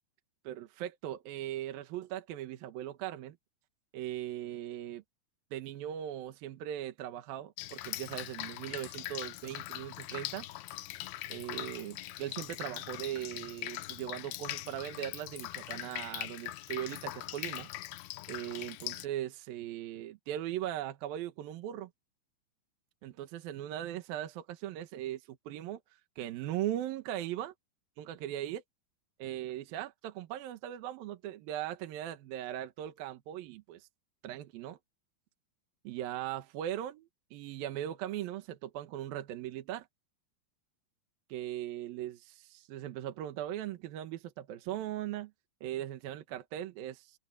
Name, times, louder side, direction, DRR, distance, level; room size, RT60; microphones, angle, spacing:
voice 1, 0.4-3.4 3.9-5.0 5.5-10.5 11.3-17.7 18.3-21.9 23.0-25.8 26.2-27.5 28.0-28.6 29.2-33.9 34.2-34.8 35.8-39.9 41.3-45.3 45.6-47.2, right 12 dB, 75° right, 2.9 m, -39 dB
Drip, 7.6-19.1, left 15 dB, 90° left, 2.8 m, -41 dB
omnidirectional pair, 4.4 m